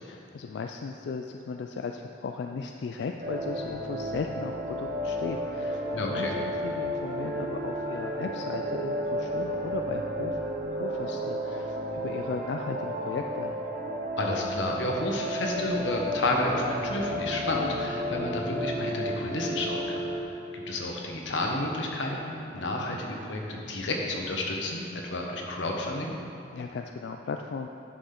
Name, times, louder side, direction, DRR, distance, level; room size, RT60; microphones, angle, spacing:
voice 1, 0.0-10.4 10.7-13.5 26.5-27.7, left 4 dB, 65° left, 4 dB, 0.3 m, -36 dB
sound 1, 3.2-20.2, equal, 50° right, 0.9 m, -32 dB
voice 2, 5.9-6.3 14.2-26.1, left 1 dB, 80° left, 0 dB, 1.1 m, -31 dB
9.7 x 6.2 x 3.8 m, 2.7 s
head